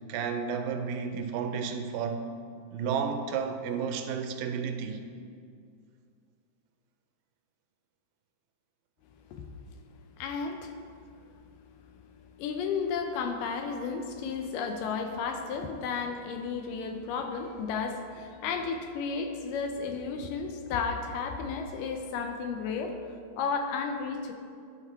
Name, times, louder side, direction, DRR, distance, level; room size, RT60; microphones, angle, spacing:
voice 1, 0.1-2.3 2.7-5.0, right 6 dB, 80° right, 6 dB, 2.1 m, -32 dB
voice 2, 10.2-10.8 12.4-23.0 23.4-24.3, left 5 dB, 80° left, 5 dB, 2.1 m, -33 dB
11.5 x 3.9 x 4.5 m, 2.3 s
omnidirectional pair, 4.0 m